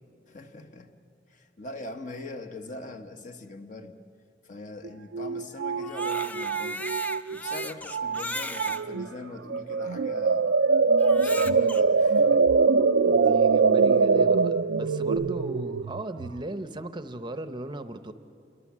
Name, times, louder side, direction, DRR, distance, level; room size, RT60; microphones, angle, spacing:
voice 1, 0.3-0.9 1.3-4.0 4.4-6.8 7.3-10.5 11.1-12.5, left 2 dB, 45° left, 6 dB, 1.3 m, -42 dB
sound 1, 4.8-4.9 5.1-7.7 7.9-8.2 8.6-9.1 9.5-16.4, right 4 dB, 80° right, 0.5 m, -23 dB
Crying sobbing, 5.7-8.8 9.6-9.7 11.0-11.8, left 1 dB, 10° left, 0.6 m, -36 dB
voice 2, 13.0-18.1, right 1 dB, 25° right, 10 dB, 0.7 m, -37 dB
27.5 x 22.5 x 7.4 m, 2.7 s
head